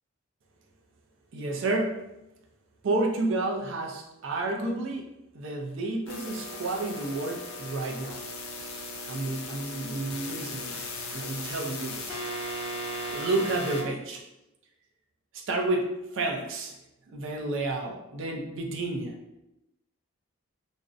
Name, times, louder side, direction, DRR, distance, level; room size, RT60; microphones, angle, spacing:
voice 1, 1.3-2.1 2.8-5.1 5.3-8.2 9.0-10.8 11.1-12.2 13.1-14.2 15.3-16.8 17.1-19.2, right 2 dB, 60° right, 1 dB, 0.4 m, -30 dB
sound 1, 6.1-13.8, left 1 dB, 75° left, 0.4 m, -37 dB
2.5 x 2.0 x 2.4 m, 0.91 s
head